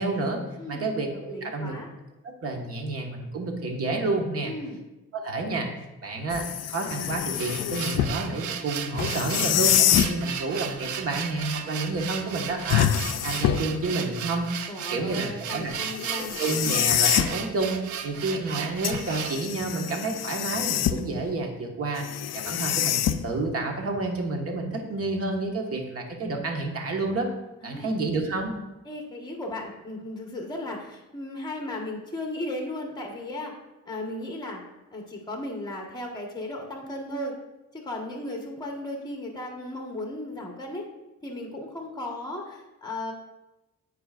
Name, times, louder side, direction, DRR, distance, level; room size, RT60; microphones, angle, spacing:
voice 1, 0.0-0.4 0.7-1.7 2.4-4.5 5.1-5.7 6.0-12.9 13.2-14.5 14.9-15.7 16.4-22.0 22.3-27.3 27.6-28.5, right 3 dB, 50° right, 2 dB, 1.5 m, -29 dB
voice 2, 0.6-1.0 1.3-1.9 4.4-4.8 14.7-16.3 27.6-27.9 28.8-33.5 33.8-34.6 34.9-37.3 37.7-40.8 41.2-43.1, left 1 dB, 15° left, 1 dB, 1.5 m, -35 dB
sound 1, 6.3-8.2 9.0-10.2 12.7-13.8 16.0-17.4 18.8-21.2 22.0-23.5, left 11 dB, 60° left, 0.4 m, -26 dB
sound 2, 7.2-19.4, right 8 dB, 75° right, 0.6 m, -35 dB
13.5 x 4.5 x 2.5 m, 0.99 s
cardioid pair, 90°, 30 cm